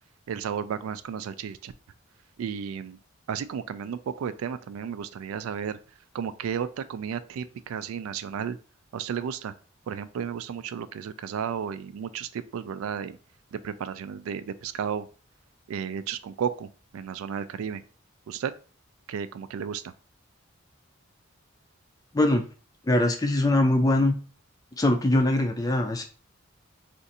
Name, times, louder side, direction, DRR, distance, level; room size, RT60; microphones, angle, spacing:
voice 1, 0.3-1.7 2.4-3.0 3.3-5.8 6.1-8.6 8.9-9.5 9.9-13.2 13.5-15.1 15.7-16.7 16.9-17.8 18.3-18.5 19.1-19.8, right 7 dB, 90° right, 13 dB, 0.3 m, -33 dB
voice 2, 22.8-24.1 24.8-26.0, left 1 dB, 15° left, 6 dB, 0.3 m, -22 dB
2.6 x 2.5 x 4.0 m, 0.37 s
head